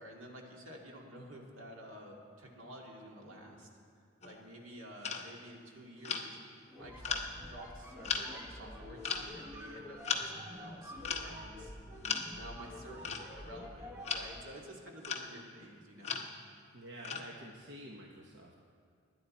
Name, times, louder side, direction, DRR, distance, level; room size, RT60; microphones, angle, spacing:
voice 1, 0.0-3.7 4.2-11.8 12.3-16.2, equal, 80° right, -1 dB, 2.2 m, -51 dB
sound 1, 4.2-4.5 5.0-5.3 6.0-6.3 7.0-7.2 8.0-8.2 9.0-9.3 10.0-10.2 11.0-11.3 12.0-12.3 13.0-13.6 14.0-14.2 15.0-15.3 16.0-16.3 17.0-17.3, left 6 dB, 30° left, 0.9 m, -36 dB
sound 2, 6.7-14.5, left 1 dB, 10° right, 1.1 m, -48 dB
voice 2, 16.7-18.6, right 1 dB, 60° right, -1 dB, 1.0 m, -49 dB
21.0 x 9.7 x 4.3 m, 2.2 s
head